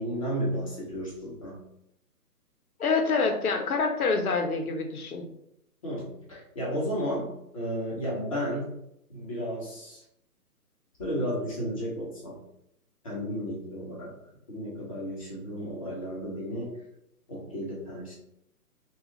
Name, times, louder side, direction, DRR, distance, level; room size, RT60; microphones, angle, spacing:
voice 1, 0.0-1.6 5.8-8.7 9.1-10.0 11.0-12.4 13.0-14.1 14.5-16.8 17.3-18.1, equal, 20° left, -7 dB, 0.7 m, -33 dB
voice 2, 2.8-5.3, left 4 dB, 65° left, 4 dB, 0.7 m, -26 dB
3.0 x 2.4 x 2.8 m, 0.78 s
hypercardioid pair, 150°, 47 cm